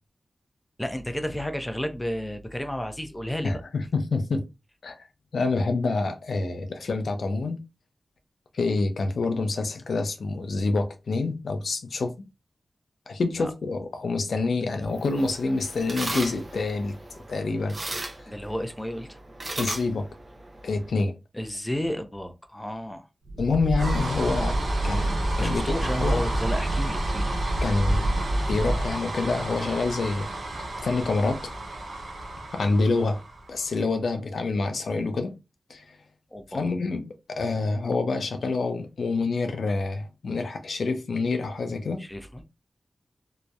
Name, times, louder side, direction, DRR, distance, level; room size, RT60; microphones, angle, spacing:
voice 1, 0.8-3.6 13.4-13.5 18.3-19.2 21.3-23.1 25.4-27.3 36.3-36.7 42.0-42.4, left 1 dB, 10° left, 0.5 m, -32 dB
voice 2, 3.4-4.5 4.8-4.9 5.3-7.6 8.5-12.1 13.1-16.9 17.3-17.8 19.6-20.1 20.6-21.2 23.4-24.6 24.8-26.3 27.6-28.1 28.5-30.3 30.8-31.5 32.5-33.2 33.5-35.3 35.7-35.8 36.5-42.0, left 3 dB, 85° left, 0.4 m, -27 dB
sound 1, 14.8-20.9, right 2 dB, 45° right, 0.5 m, -37 dB
sound 2, 23.2-33.8, right 1 dB, 85° right, 0.6 m, -28 dB
2.7 x 2.0 x 2.3 m
cardioid pair, 55°, 0 cm